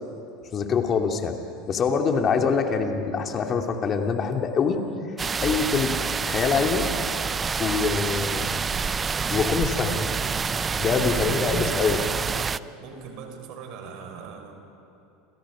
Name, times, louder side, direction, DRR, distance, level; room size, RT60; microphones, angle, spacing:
voice 1, 0.5-1.4 1.7-4.8 5.4-6.9 7.6-8.5 9.3-10.1 10.8-12.0, left 5 dB, 40° left, 3 dB, 2.7 m, -24 dB
sound 1, 5.2-12.6, right 5 dB, 25° right, 0.6 m, -27 dB
voice 2, 11.0-12.3 12.8-14.6, right 6 dB, 60° right, 5 dB, 4.8 m, -38 dB
28.5 x 28.5 x 5.1 m, 2.8 s
hypercardioid pair, 90°, 0 cm